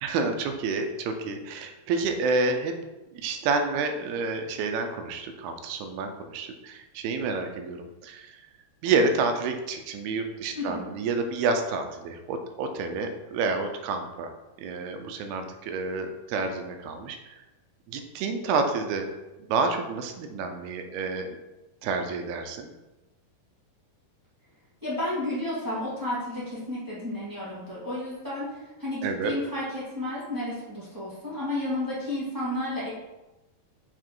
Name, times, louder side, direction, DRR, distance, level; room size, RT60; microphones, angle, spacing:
voice 1, 0.0-2.7 3.1-8.3 8.8-14.3 14.6-17.2 17.9-19.1 19.5-21.4 21.8-22.7 29.0-29.3, right 4 dB, 80° right, 6 dB, 2.5 m, -29 dB
voice 2, 10.5-10.9 24.8-32.9, left 1 dB, 15° right, -10 dB, 0.8 m, -32 dB
6.3 x 4.8 x 4.5 m, 1.1 s
omnidirectional pair, 4.7 m